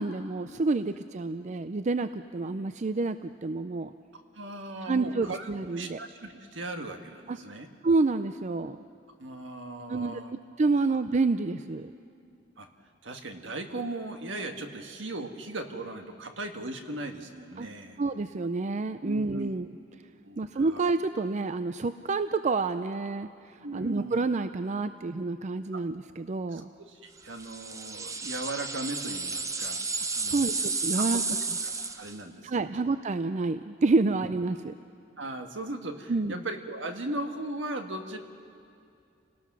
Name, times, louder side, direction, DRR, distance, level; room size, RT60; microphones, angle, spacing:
voice 1, 0.0-3.9 4.9-6.0 7.3-7.4 7.8-8.8 9.9-11.9 17.6-17.7 18.0-19.7 20.4-26.7 30.3-31.2 32.4-34.7 36.1-36.4, right 3 dB, 40° right, 11 dB, 0.5 m, -28 dB
voice 2, 4.3-7.7 9.2-10.3 10.9-11.0 12.6-12.7 13.0-18.0 19.0-19.5 20.3-20.8 23.6-24.2 26.5-29.8 30.1-30.6 30.9-31.2 31.6-32.8 34.1-34.3 35.2-38.2, right 2 dB, 75° right, 5 dB, 1.7 m, -38 dB
sound 1, 27.4-32.2, right 4 dB, 15° right, 0.8 m, -32 dB
29.0 x 19.0 x 6.1 m, 2.4 s
head